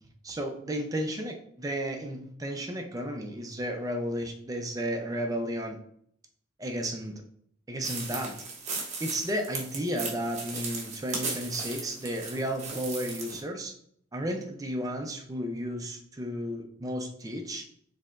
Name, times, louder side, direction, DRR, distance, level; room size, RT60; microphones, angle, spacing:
voice 1, 0.2-5.8 6.6-7.2 7.7-8.4 9.0-13.7 14.1-17.6, equal, 20° right, 3 dB, 0.5 m, -33 dB
sound 1, 7.8-13.4, right 4 dB, 35° right, 0.9 m, -37 dB
4.7 x 3.4 x 2.4 m, 0.66 s
head